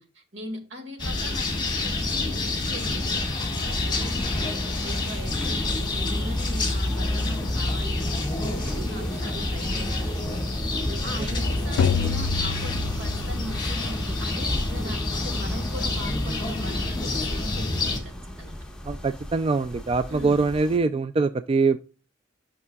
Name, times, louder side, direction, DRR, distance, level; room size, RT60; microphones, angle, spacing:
voice 1, 0.0-5.7 5.9-10.4 11.0-18.6 20.1-20.4, equal, 75° right, 2.1 m, -40 dB
sound 1, 1.0-18.0, left 2 dB, 25° left, 1.7 m, -28 dB
sound 2, 1.2-20.8, left 1 dB, 5° left, 1.1 m, -38 dB
sound 3, 11.8-13.7, left 7 dB, 90° left, 0.3 m, -28 dB
voice 2, 18.8-21.8, right 4 dB, 30° right, 0.3 m, -23 dB
11.0 x 5.9 x 2.3 m
head